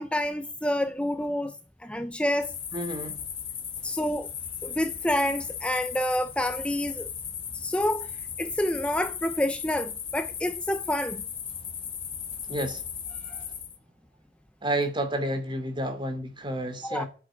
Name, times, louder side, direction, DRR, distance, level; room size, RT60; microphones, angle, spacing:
voice 1, 0.0-1.5 1.8-2.6 3.8-4.3 4.6-7.1 7.5-11.2 13.2-13.4 16.8-17.0, left 1 dB, 5° left, 0.8 m, -28 dB
sound 1, 2.4-13.8, left 8 dB, 30° left, 2.2 m, -36 dB
voice 2, 2.7-3.3 3.8-3.9 12.3-12.9 14.6-17.1, right 1 dB, 30° right, 3.0 m, -31 dB
10.0 x 9.8 x 9.2 m
head